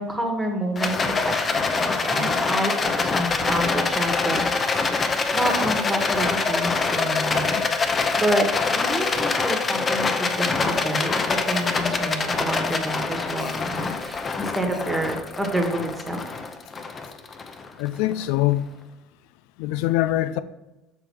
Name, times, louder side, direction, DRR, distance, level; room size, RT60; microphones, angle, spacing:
voice 1, 0.0-4.4 4.7-16.2, right 1 dB, 15° right, 1.4 m, -28 dB
Rattle, 0.7-18.1, left 4 dB, 30° left, 0.6 m, -25 dB
voice 2, 17.8-18.7 19.6-20.4, left 14 dB, 70° left, 0.3 m, -23 dB
6.9 x 3.6 x 4.6 m
hypercardioid pair, 80°, 0 cm